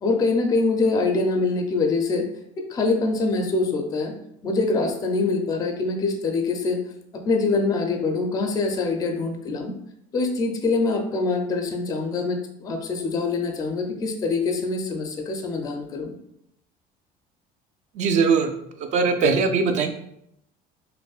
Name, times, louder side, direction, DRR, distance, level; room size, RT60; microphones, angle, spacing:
voice 1, 0.0-2.3 2.6-4.1 4.4-6.8 7.3-9.7 10.1-16.1, left 3 dB, 20° left, 4 dB, 0.4 m, -24 dB
voice 2, 18.0-18.5 18.9-19.9, right 5 dB, 45° right, 6 dB, 0.4 m, -20 dB
5.1 x 2.1 x 2.3 m, 0.76 s
cardioid pair, 170°, 17 cm